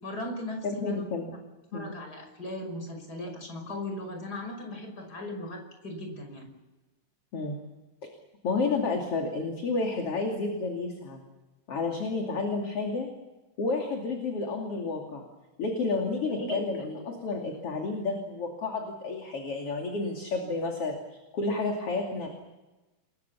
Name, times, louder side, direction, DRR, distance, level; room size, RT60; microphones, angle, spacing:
voice 1, 0.0-1.0 1.7-6.5 16.3-17.2, left 1 dB, 30° left, 4 dB, 6.2 m, -38 dB
voice 2, 0.8-1.4 1.7-1.9 7.3-7.6 8.4-11.2 11.7-13.1 13.6-15.2 15.6-22.3, left 3 dB, 50° left, 2 dB, 3.6 m, -31 dB
29.0 x 22.0 x 7.2 m, 1.1 s
omnidirectional pair, 3.5 m